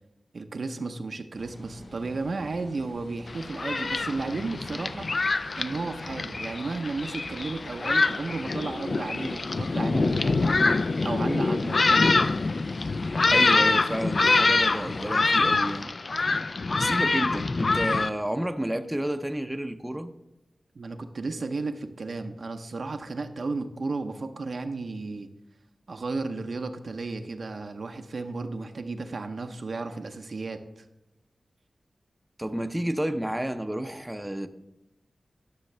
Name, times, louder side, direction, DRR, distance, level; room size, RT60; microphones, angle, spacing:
voice 1, 0.3-5.1 5.6-10.7 11.0-12.1 20.7-25.3 25.9-30.6, right 3 dB, 65° right, 0.6 m, -33 dB
sound 1, 1.3-15.1, left 1 dB, 75° left, 2.9 m, -48 dB
Thunderstorm, 3.3-18.1, left 3 dB, 55° left, 0.3 m, -25 dB
voice 2, 13.3-15.9 16.8-20.1 32.4-34.5, right 1 dB, 10° right, 0.6 m, -30 dB
11.5 x 6.3 x 3.3 m
cardioid pair, 50°, 0 cm